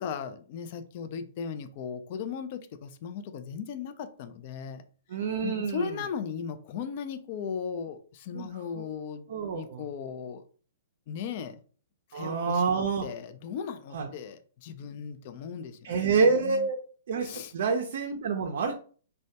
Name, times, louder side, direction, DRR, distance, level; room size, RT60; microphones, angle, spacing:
voice 1, 0.0-4.8 5.4-9.3 9.5-10.4 11.1-11.6 12.1-15.9 16.2-16.7 17.2-17.5, left 7 dB, 50° left, 0.3 m, -37 dB
voice 2, 5.1-5.9 8.3-8.5 9.3-9.8 12.1-13.1 13.9-14.1 15.8-16.8 17.1-18.7, right 5 dB, 65° right, 0.4 m, -27 dB
2.1 x 2.1 x 2.7 m
hypercardioid pair, 135°, 0 cm